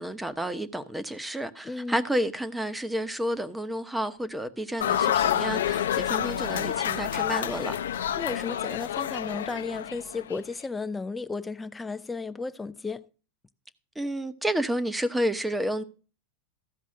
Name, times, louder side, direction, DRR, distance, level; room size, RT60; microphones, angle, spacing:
voice 1, 0.0-7.8 13.9-15.8, equal, 5° right, 1.0 m, -30 dB
voice 2, 1.6-2.1 8.2-13.1, left 4 dB, 15° left, 0.6 m, -34 dB
sound 1, 4.8-10.4, left 10 dB, 90° left, 0.7 m, -28 dB
14.5 x 5.3 x 6.4 m
hypercardioid pair, 115°, 0 cm